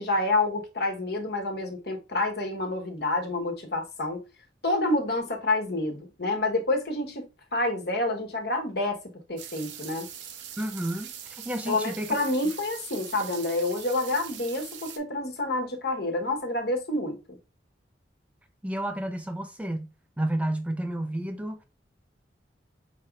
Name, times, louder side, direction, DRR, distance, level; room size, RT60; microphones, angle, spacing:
voice 1, 0.0-4.2 4.6-7.3 7.5-9.0 9.3-10.1 11.7-17.2, left 2 dB, 60° left, 1.3 m, -28 dB
sound 1, 9.4-15.0, right 9 dB, 85° right, 0.8 m, -42 dB
voice 2, 10.6-12.2 18.6-19.9 20.2-21.6, right 1 dB, 10° right, 0.4 m, -31 dB
5.2 x 4.0 x 2.4 m
head